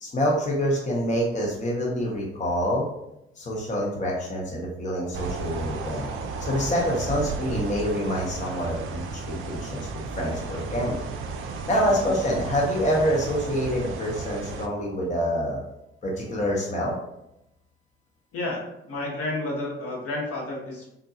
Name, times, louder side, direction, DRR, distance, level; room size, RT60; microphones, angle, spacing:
voice 1, 0.0-2.9 3.4-6.1 6.4-11.0 11.7-15.6 16.0-16.9, equal, 25° left, -3 dB, 0.8 m, -26 dB
sound 1, 5.1-14.7, right 4 dB, 45° right, 0.4 m, -34 dB
voice 2, 18.3-20.9, left 2 dB, 50° left, -2 dB, 1.1 m, -31 dB
3.6 x 2.2 x 2.8 m, 0.83 s
figure-of-eight pair, 45°, 29 cm